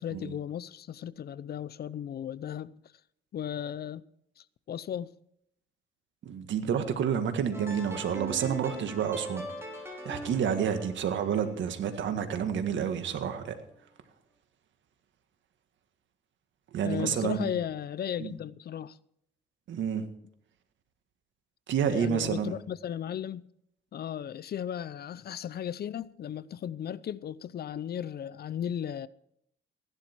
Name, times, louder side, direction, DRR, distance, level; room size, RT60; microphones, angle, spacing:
voice 1, 0.0-2.8 3.3-4.1 4.4-5.1 16.8-19.0 21.9-23.4 23.9-29.1, left 9 dB, 55° left, 0.6 m, -36 dB
voice 2, 6.2-9.5 10.1-13.5 16.7-17.5 18.2-18.3 19.7-20.0 21.7-22.5, right 8 dB, 70° right, 1.8 m, -29 dB
sound 1, 7.5-12.6, equal, 10° right, 5.0 m, -42 dB
16.0 x 11.5 x 4.6 m
cardioid pair, 90°, 20 cm